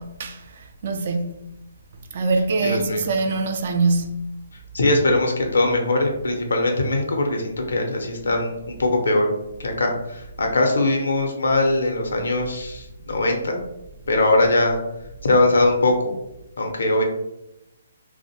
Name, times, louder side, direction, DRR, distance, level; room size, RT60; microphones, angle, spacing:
voice 1, 0.0-1.4 2.1-4.4, right 3 dB, 55° right, 0.3 m, -24 dB
voice 2, 2.6-3.0 4.7-9.3 9.6-13.6 14.1-14.8 15.2-16.1 16.6-17.0, left 2 dB, 75° left, 0.6 m, -21 dB
2.4 x 2.1 x 2.7 m
figure-of-eight pair, 140°, 0 cm